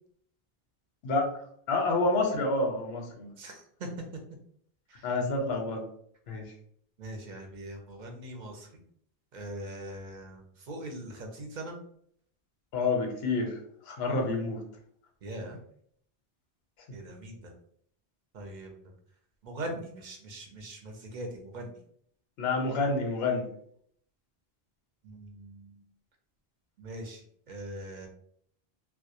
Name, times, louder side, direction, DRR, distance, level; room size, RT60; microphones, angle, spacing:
voice 1, 1.7-3.3 5.0-5.8 6.3-6.5 12.7-13.6 13.8-14.6 22.4-23.5, left 3 dB, 90° left, 2 dB, 0.8 m, -28 dB
voice 2, 3.4-3.9 4.9-5.1 7.0-8.8 9.3-11.8 15.2-15.6 16.9-17.5 18.3-18.7 19.4-21.8 25.0-25.8 26.8-28.1, right 1 dB, 55° right, 2 dB, 0.6 m, -41 dB
2.2 x 2.0 x 2.7 m, 0.65 s
omnidirectional pair, 1.0 m